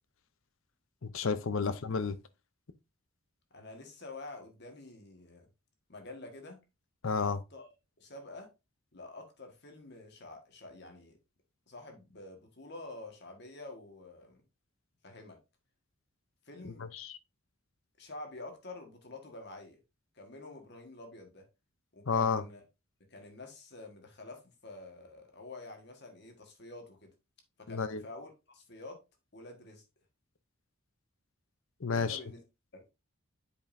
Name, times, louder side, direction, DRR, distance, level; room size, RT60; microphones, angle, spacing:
voice 1, 1.0-2.2 7.0-7.4 16.6-17.2 22.1-22.4 27.7-28.0 31.8-32.2, left 5 dB, 65° left, 0.6 m, -31 dB
voice 2, 3.5-5.5 5.9-6.6 7.2-7.7 8.0-8.5 8.9-11.2 11.7-14.4 15.0-15.4 16.4-16.9 18.0-19.8 20.1-21.4 21.9-22.6 23.1-27.1 27.6-29.0 29.3-29.8 31.9-32.4 32.7-32.8, left 2 dB, 50° left, 1.6 m, -48 dB
8.3 x 5.2 x 2.6 m
head